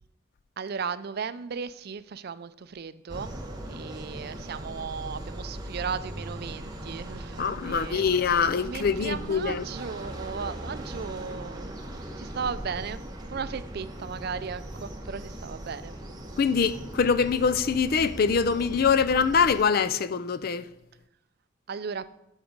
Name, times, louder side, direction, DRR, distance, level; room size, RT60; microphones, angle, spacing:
voice 1, 0.6-3.3 3.7-8.3 8.6-11.7 12.2-16.0 21.7-22.1, right 6 dB, 50° right, 0.4 m, -36 dB
sound 1, 3.1-19.6, right 1 dB, 20° right, 1.2 m, -39 dB
voice 2, 7.4-9.6 16.4-20.7, left 5 dB, 50° left, 0.4 m, -24 dB
9.9 x 6.4 x 5.1 m
head